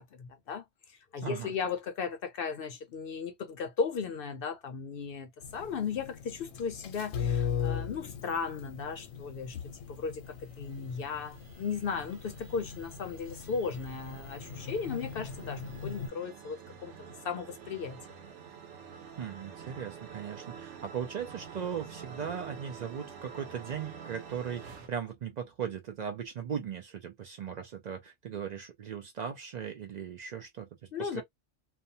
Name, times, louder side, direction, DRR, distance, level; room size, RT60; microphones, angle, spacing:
voice 1, 0.0-18.0 30.9-31.2, left 5 dB, 65° left, 0.6 m, -36 dB
voice 2, 1.2-1.5 19.2-30.7 31.0-31.2, right 8 dB, 90° right, 0.3 m, -38 dB
sound 1, 5.4-16.1, left 7 dB, 85° left, 1.0 m, -39 dB
sound 2, 10.3-24.9, right 6 dB, 70° right, 1.0 m, -48 dB
2.6 x 2.1 x 2.6 m
omnidirectional pair, 1.3 m